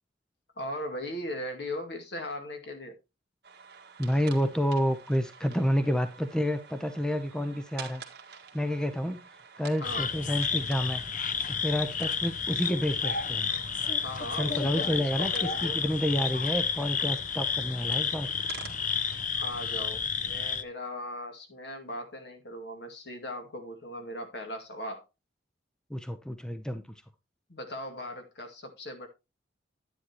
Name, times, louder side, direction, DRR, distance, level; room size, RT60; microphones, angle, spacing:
voice 1, 0.6-3.0 9.7-10.0 14.0-15.8 19.3-25.0 27.5-29.1, left 1 dB, 65° left, 2.3 m, -38 dB
sound 1, 3.4-19.2, right 6 dB, 60° right, 1.7 m, -49 dB
voice 2, 4.0-8.0 8.5-9.2 9.6-11.0 11.5-13.5 14.4-18.3 25.9-26.8, equal, 5° left, 0.7 m, -29 dB
sound 2, 9.8-20.6, left 6 dB, 45° left, 0.7 m, -31 dB
10.0 x 9.5 x 2.9 m
head